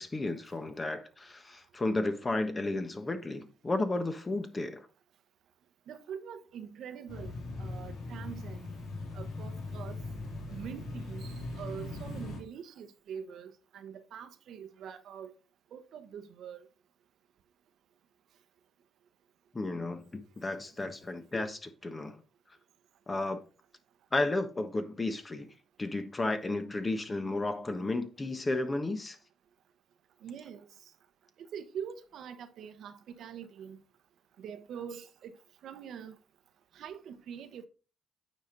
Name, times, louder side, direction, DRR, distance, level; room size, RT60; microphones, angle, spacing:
voice 1, 0.0-4.9 19.5-22.2 23.1-23.4 24.1-25.5 25.8-29.2, left 2 dB, 25° left, 1.2 m, -33 dB
voice 2, 5.9-7.3 7.6-8.7 9.1-10.0 10.5-15.3 15.7-16.7 30.2-30.9 31.4-33.8 34.4-35.4 35.6-36.2 36.7-37.7, right 8 dB, 75° right, 1.0 m, -44 dB
sound 1, 7.1-12.4, left 2 dB, 75° left, 2.6 m, -40 dB
9.1 x 5.2 x 4.0 m
cardioid pair, 90°, 0 cm